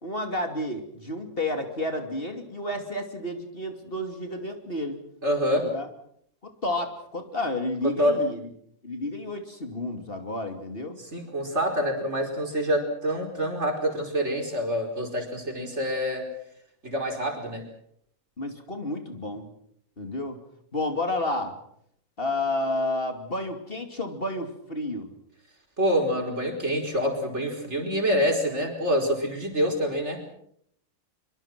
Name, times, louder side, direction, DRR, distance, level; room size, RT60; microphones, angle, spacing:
voice 1, 0.0-5.0 5.6-5.9 6.6-8.5 8.8-11.0 18.4-19.5 20.0-20.4 20.7-21.5 22.2-25.1, left 1 dB, 40° left, 5 dB, 2.9 m, -31 dB
voice 2, 5.2-5.7 7.8-8.2 11.0-16.3 16.8-17.6 25.8-30.2, equal, 50° right, 2 dB, 5.3 m, -26 dB
25.0 x 24.5 x 6.1 m, 0.69 s
omnidirectional pair, 1.5 m